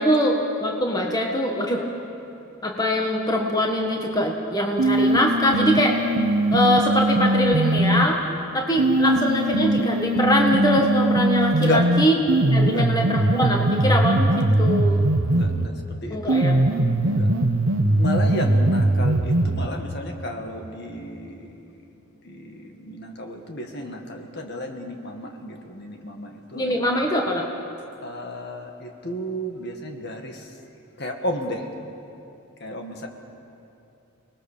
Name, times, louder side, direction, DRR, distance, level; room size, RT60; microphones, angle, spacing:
voice 1, 0.0-1.8 2.6-6.0 6.5-8.2 8.5-12.1 12.5-15.0 16.1-16.6 26.5-27.5, equal, 15° left, 0 dB, 1.6 m, -22 dB
sound 1, 4.8-8.1 8.8-15.8 16.3-19.8, right 1 dB, 70° right, 1.0 m, -21 dB
voice 2, 12.5-12.9 15.3-16.3 17.0-17.3 18.0-21.8 22.2-27.0 28.0-30.5 31.0-31.7 32.6-33.1, left 1 dB, 50° left, 3 dB, 2.0 m, -32 dB
29.5 x 20.0 x 6.8 m, 2.8 s
head